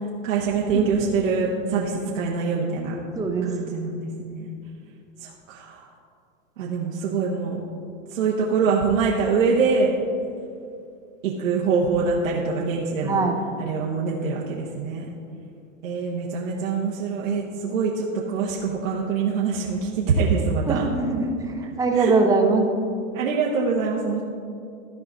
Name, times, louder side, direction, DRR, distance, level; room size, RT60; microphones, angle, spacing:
voice 1, 0.2-3.0 3.4-4.5 5.2-5.9 6.6-7.6 8.1-9.9 11.2-13.2 13.6-15.1 15.8-20.9 21.9-22.1 23.1-24.2, right 5 dB, 85° right, -4 dB, 1.3 m, -24 dB
voice 2, 3.2-3.5 13.0-13.4 20.7-22.7, right 3 dB, 10° right, 3 dB, 0.5 m, -22 dB
14.0 x 4.8 x 4.0 m, 2.5 s
supercardioid pair, 140°, 39 cm